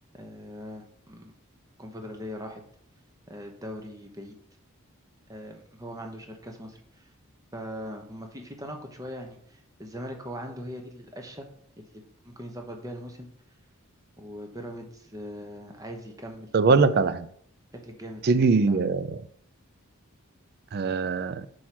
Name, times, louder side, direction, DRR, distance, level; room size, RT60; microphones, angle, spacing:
voice 1, 0.1-1.3 1.8-2.6 3.3-4.4 5.3-7.1 7.5-11.5 11.8-13.3 14.2-17.0 17.8-18.8, equal, 15° right, 0.9 m, -41 dB
voice 2, 16.5-17.3 18.2-19.2 20.7-21.5, right 4 dB, 45° right, 0.4 m, -22 dB
4.7 x 4.3 x 5.9 m
head